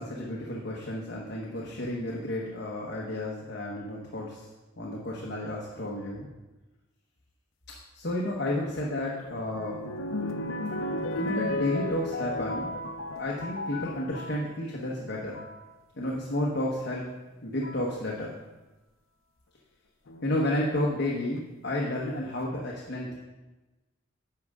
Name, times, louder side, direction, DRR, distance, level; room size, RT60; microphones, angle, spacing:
voice 1, 0.0-4.4 4.8-6.3 7.9-9.8 11.2-12.7 13.2-15.4 16.0-17.0 17.4-18.4 20.2-23.1, left 1 dB, 60° left, -3 dB, 1.1 m, -31 dB
sound 1, 8.8-14.4 15.1-15.6 16.8-16.9 17.6-17.9 20.1-20.7 21.4-21.5 21.7-21.8, left 1 dB, 90° left, 0.7 m, -34 dB
10.5 x 6.6 x 3.6 m, 1.1 s
head